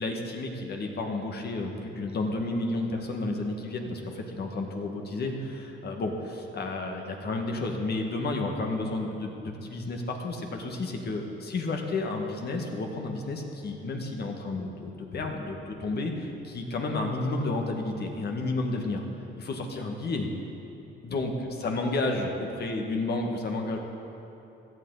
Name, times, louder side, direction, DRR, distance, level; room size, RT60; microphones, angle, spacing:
voice 1, 0.0-19.0 19.4-20.3 21.0-21.3 21.6-23.8, left 2 dB, 55° left, 2 dB, 1.8 m, -31 dB
17.0 x 12.5 x 4.1 m, 2.9 s
cardioid pair, 90°, 20 cm